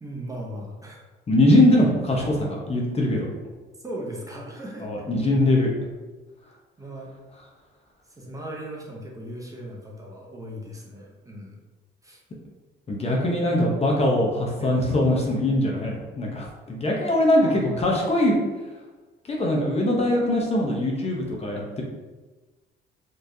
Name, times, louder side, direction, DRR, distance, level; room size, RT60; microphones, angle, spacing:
voice 1, 0.0-1.0 3.8-4.9 6.8-7.1 8.2-11.6 12.0-12.2 14.6-14.8 17.4-17.8, right 1 dB, 15° right, -2 dB, 0.8 m, -37 dB
voice 2, 1.3-3.3 4.8-5.7 12.9-18.4 19.3-21.8, left 1 dB, 30° left, -2 dB, 0.8 m, -22 dB
4.3 x 3.1 x 2.7 m, 1.2 s
cardioid pair, 110°, 20 cm